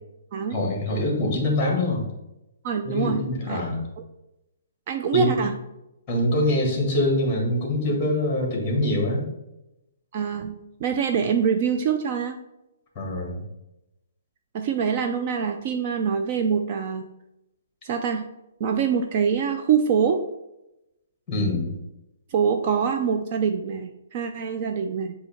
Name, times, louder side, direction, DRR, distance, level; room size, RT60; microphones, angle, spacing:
voice 1, 0.5-2.0 2.8-3.8 5.1-5.4 6.1-9.3 13.0-13.3 21.3-21.7, left 1 dB, 15° left, 0 dB, 1.7 m, -24 dB
voice 2, 2.6-3.2 3.5-3.6 4.9-5.5 10.1-10.5 10.8-12.4 14.5-17.1 17.8-18.2 18.6-20.2 22.3-25.1, right 7 dB, 30° right, 5 dB, 0.3 m, -24 dB
7.7 x 2.8 x 4.3 m, 0.91 s
hypercardioid pair, 170°, 0 cm